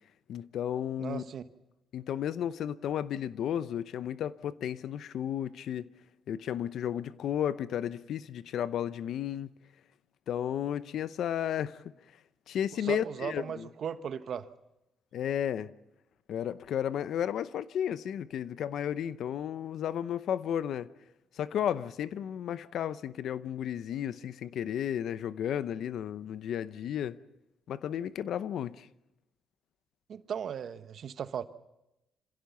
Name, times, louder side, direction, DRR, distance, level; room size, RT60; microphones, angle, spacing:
voice 1, 0.3-1.2 1.9-5.9 6.3-9.5 10.3-11.8 12.5-13.7 15.1-15.7 16.3-20.9 21.4-27.2 27.7-28.9, left 10 dB, 70° left, 0.7 m, -33 dB
voice 2, 1.0-1.5 12.8-14.5 30.1-31.4, right 8 dB, 60° right, 1.1 m, -37 dB
26.5 x 16.0 x 7.0 m
cardioid pair, 90°, 0 cm